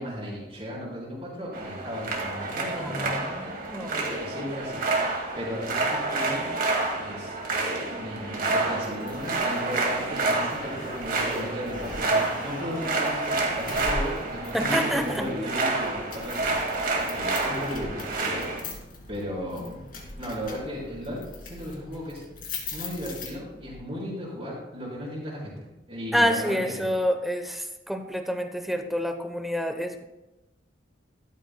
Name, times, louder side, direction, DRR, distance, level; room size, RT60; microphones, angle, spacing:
voice 1, 0.0-3.4 4.2-4.8 5.4-6.5 7.0-16.8 17.1-18.7 19.1-19.8 20.2-22.2 22.7-26.9, equal, 30° right, -9 dB, 3.7 m, -35 dB
sound 1, 1.5-18.6, right 3 dB, 50° right, 2.1 m, -29 dB
voice 2, 2.8-4.1 14.5-15.3 26.1-30.0, equal, ahead, 6 dB, 0.8 m, -28 dB
sound 2, 8.8-23.8, left 2 dB, 50° left, 2.6 m, -41 dB
14.0 x 12.0 x 2.3 m, 1.0 s
head